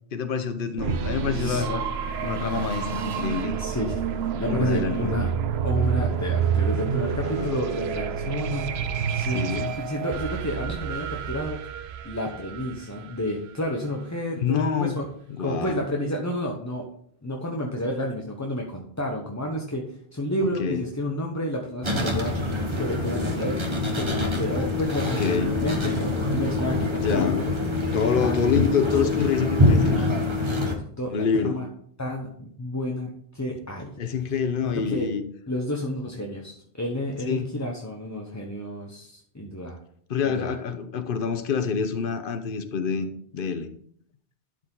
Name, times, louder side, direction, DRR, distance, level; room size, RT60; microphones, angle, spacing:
voice 1, 0.1-1.8 2.2-3.6 4.5-5.2 7.2-7.6 9.2-9.8 14.4-15.0 15.3-15.8 20.4-20.8 25.2-25.5 27.0-27.5 27.9-30.1 31.1-31.6 34.0-35.2 37.3-37.5 40.1-43.7, left 6 dB, 55° left, 0.9 m, -27 dB
sound 1, 0.8-13.5, right 7 dB, 70° right, 0.9 m, -28 dB
voice 2, 1.3-1.6 3.5-4.0 4.3-5.3 5.6-9.4 9.8-11.6 12.0-15.1 15.4-16.8 17.2-19.8 20.1-22.3 22.7-23.6 23.9-25.2 25.5-27.5 28.2-28.4 29.0-29.1 30.5-30.7 31.0-31.7 32.0-34.0 34.7-35.1 35.5-39.8 40.2-40.6, left 1 dB, 15° left, 0.9 m, -30 dB
sound 2, 21.8-30.8, left 2 dB, 25° right, 1.1 m, -25 dB
12.0 x 4.7 x 3.8 m
omnidirectional pair, 1.1 m